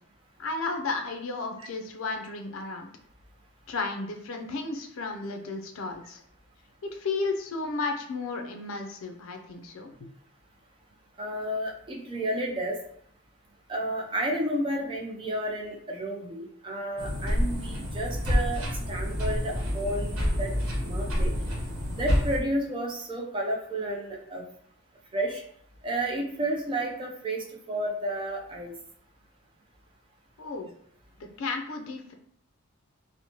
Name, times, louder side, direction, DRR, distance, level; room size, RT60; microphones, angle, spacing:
voice 1, 0.4-2.9 3.7-6.2 6.8-10.1 30.4-30.7 31.4-32.1, left 3 dB, 75° left, 4 dB, 0.4 m, -33 dB
voice 2, 11.2-12.8 13.7-20.5 20.8-21.3 22.0-24.4 25.1-25.4 25.8-28.7, right 1 dB, 25° right, -1 dB, 0.3 m, -31 dB
sound 1, 17.0-22.4, equal, 85° right, 0.9 m, -28 dB
2.9 x 2.0 x 2.7 m, 0.67 s
head